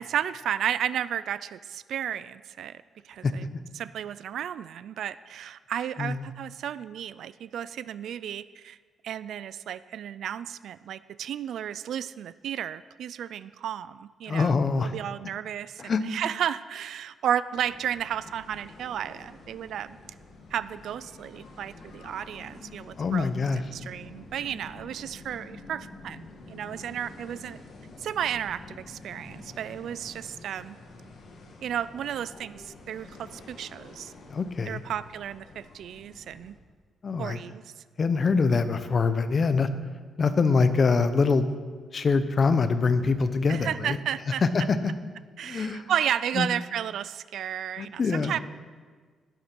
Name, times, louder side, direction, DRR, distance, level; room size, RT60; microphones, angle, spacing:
voice 1, 0.0-3.5 3.7-8.8 9.0-20.0 20.5-23.3 23.7-27.6 28.0-30.8 31.6-34.1 34.7-36.5 37.2-37.6 43.5-44.4 45.4-48.4, right 9 dB, 70° right, 16 dB, 0.3 m, -33 dB
voice 2, 6.0-6.3 14.3-14.9 15.8-16.0 23.0-23.6 34.3-34.8 37.0-37.4 38.0-39.7 40.2-41.5 41.9-44.0 44.4-44.9 45.4-45.9 46.3-46.5 47.8-48.3, left 4 dB, 35° left, 11 dB, 0.8 m, -24 dB
sound 1, 17.5-36.5, left 3 dB, 60° left, 2.2 m, -48 dB
11.5 x 9.9 x 6.0 m, 1.5 s
cardioid pair, 145°, 0 cm